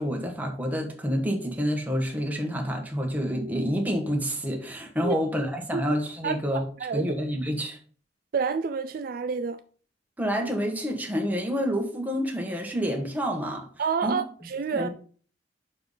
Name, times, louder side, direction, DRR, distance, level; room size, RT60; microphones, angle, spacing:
voice 1, 0.0-6.6 6.9-7.8 10.2-13.7 14.0-14.2 14.7-14.9, equal, 10° right, 1.3 m, -28 dB
voice 2, 6.2-7.0 8.3-9.6 13.8-14.9, right 5 dB, 50° right, 0.3 m, -29 dB
5.4 x 4.5 x 5.4 m
head